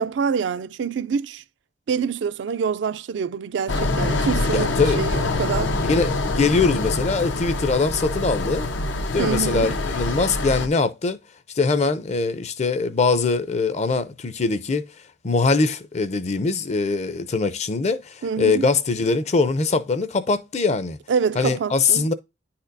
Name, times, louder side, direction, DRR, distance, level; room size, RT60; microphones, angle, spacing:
voice 1, 0.0-1.4 1.9-5.8 9.2-9.7 18.2-18.6 21.1-22.1, right 6 dB, 70° right, 0.4 m, -26 dB
sound 1, 3.7-10.7, left 2 dB, 90° left, 0.8 m, -25 dB
voice 2, 4.5-5.0 5.9-8.7 9.1-11.2 11.6-14.8 15.2-21.0 21.4-22.1, left 4 dB, 35° left, 0.5 m, -22 dB
10.0 x 4.2 x 2.6 m
head